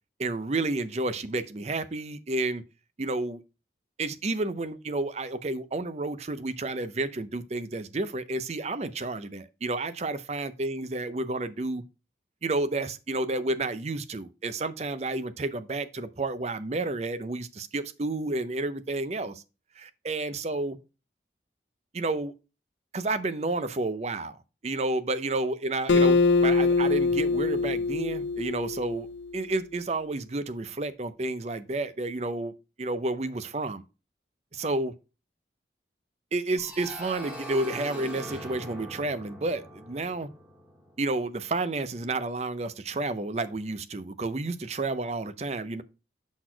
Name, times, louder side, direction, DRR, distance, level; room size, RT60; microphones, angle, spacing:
voice 1, 0.2-2.6 3.0-3.4 4.0-11.8 12.4-19.4 19.8-20.8 21.9-22.3 22.9-24.4 24.6-29.1 29.3-32.5 32.8-33.8 34.5-34.9 36.3-40.3 41.0-45.8, right 2 dB, 35° right, 0.5 m, -31 dB
Acoustic guitar, 25.9-29.3, left 3 dB, 85° left, 0.6 m, -23 dB
sound 1, 36.6-41.2, equal, 10° right, 1.8 m, -42 dB
6.2 x 4.1 x 4.4 m
head